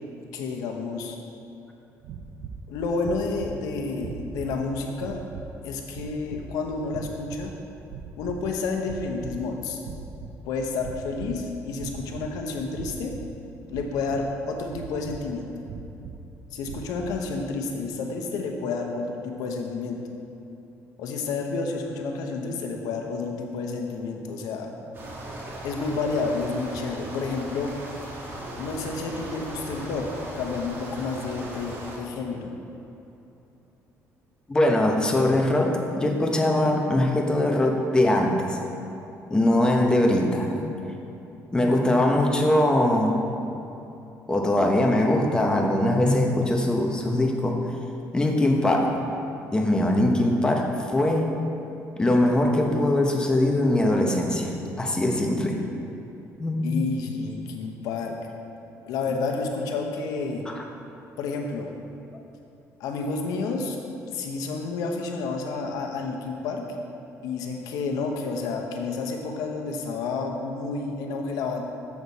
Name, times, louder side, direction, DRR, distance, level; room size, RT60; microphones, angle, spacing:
voice 1, 0.3-1.2 2.7-5.2 5.6-7.5 8.2-9.8 10.4-13.1 13.7-15.5 16.5-20.0 21.0-24.7 25.6-27.7 28.6-30.1 30.3-32.5 56.6-58.2 58.9-60.5 61.2-61.7 62.8-63.8 64.1-66.6 67.2-71.6, left 4 dB, 90° left, 2 dB, 0.9 m, -30 dB
sound 1, 2.0-2.6 3.0-3.6 4.0-4.6 4.9-5.5 5.9-6.4 6.9-7.5 7.8-8.5 8.8-9.5 9.8-10.4 10.8-11.4 11.7-12.3 12.7-13.3 13.7-14.3 14.7-15.3 15.6-16.2 16.6-17.2, right 6 dB, 70° right, 0.5 m, -39 dB
sound 2, 24.9-32.0, right 1 dB, 40° right, 1.4 m, -38 dB
voice 2, 34.5-38.6 39.3-40.7 41.5-43.2 44.3-47.6 48.1-48.9 49.5-51.3 52.0-55.6 56.4-56.7 60.5-60.6, left 1 dB, 15° left, 1 dB, 0.8 m, -22 dB
7.1 x 6.3 x 4.1 m, 2.9 s
cardioid pair, 130°, 6 cm